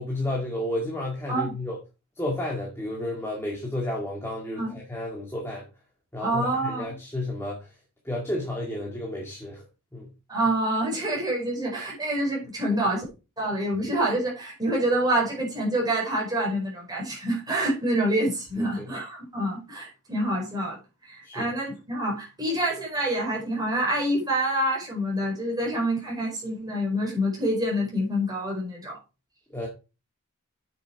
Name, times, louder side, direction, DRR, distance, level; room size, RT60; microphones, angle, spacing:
voice 1, 0.0-1.8 2.2-5.7 6.1-7.7 8.1-9.6 9.9-10.1 18.6-18.9 21.2-21.5 29.5-29.7, left 1 dB, 10° left, 2.0 m, -32 dB
voice 2, 6.2-6.9 10.3-13.0 13.4-28.9, right 1 dB, 15° right, 4.7 m, -27 dB
8.8 x 6.9 x 4.6 m
head